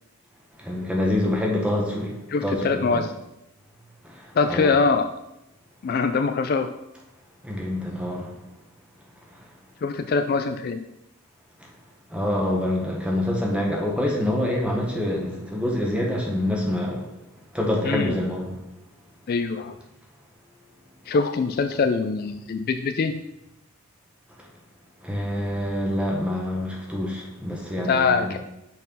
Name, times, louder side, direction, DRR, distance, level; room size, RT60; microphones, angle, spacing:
voice 1, 0.6-3.0 4.0-4.7 5.9-6.0 7.4-8.4 9.3-9.5 11.6-11.7 12.1-17.1 17.5-18.6 24.4-24.5 25.0-28.3, left 1 dB, 5° right, -1 dB, 1.2 m, -26 dB
voice 2, 2.3-3.1 4.3-5.1 5.8-6.7 9.8-10.9 17.8-18.2 19.3-19.7 21.1-23.2 27.8-28.4, left 4 dB, 45° left, 8 dB, 0.3 m, -23 dB
6.2 x 4.3 x 5.3 m, 0.91 s
head